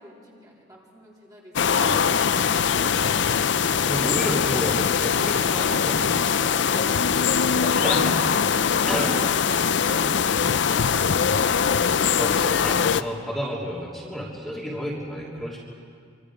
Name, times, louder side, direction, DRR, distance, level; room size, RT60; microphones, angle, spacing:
voice 1, 0.0-3.3 6.7-8.4 8.8-11.2, equal, 20° right, -5 dB, 3.5 m, -45 dB
sound 1, 1.6-13.0, left 6 dB, 65° left, 0.5 m, -22 dB
voice 2, 3.8-6.2 7.4-8.2 8.9-9.1 11.6-15.6, equal, ahead, -6 dB, 3.3 m, -31 dB
25.5 x 25.5 x 5.0 m, 2.2 s
head